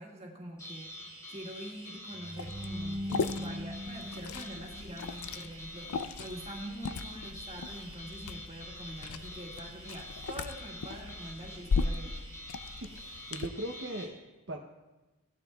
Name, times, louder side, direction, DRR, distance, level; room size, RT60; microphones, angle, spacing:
voice 1, 0.0-12.2, right 1 dB, 30° right, -2 dB, 1.9 m, -45 dB
sound 1, 0.6-14.1, left 1 dB, 15° left, 2.1 m, -47 dB
sound 2, 2.1-5.3, left 1 dB, 5° right, 1.0 m, -40 dB
Liquid, 2.4-13.5, left 4 dB, 90° left, 0.5 m, -38 dB
voice 2, 12.8-14.1 14.5-14.6, right 1 dB, 55° right, 1 dB, 0.7 m, -40 dB
17.5 x 11.5 x 2.3 m, 1.1 s
head